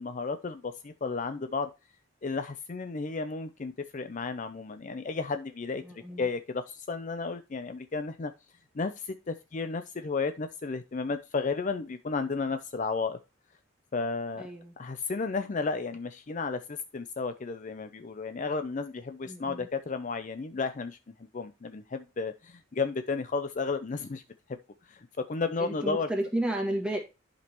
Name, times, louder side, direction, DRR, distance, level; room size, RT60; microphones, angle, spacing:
voice 1, 0.0-1.7 2.2-5.8 6.2-8.3 8.7-13.2 13.9-14.5 14.8-24.2 24.5-24.6 24.9-26.1, left 4 dB, 40° left, 9 dB, 0.5 m, -33 dB
voice 2, 5.8-6.3 14.4-14.7 19.3-19.7 25.6-27.0, right 1 dB, 5° right, 1 dB, 1.9 m, -32 dB
11.5 x 5.2 x 3.0 m, 0.28 s
head